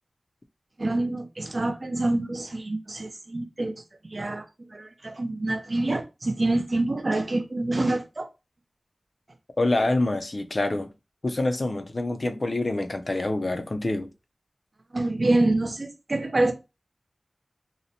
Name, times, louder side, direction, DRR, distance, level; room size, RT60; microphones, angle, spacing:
voice 1, 0.8-3.8 4.0-8.3 14.9-16.5, right 2 dB, 50° right, 0.4 m, -26 dB
voice 2, 9.6-10.9 11.2-14.1, left 2 dB, 50° left, 0.4 m, -26 dB
2.7 x 2.0 x 2.7 m
wide cardioid pair, 60°, 0 cm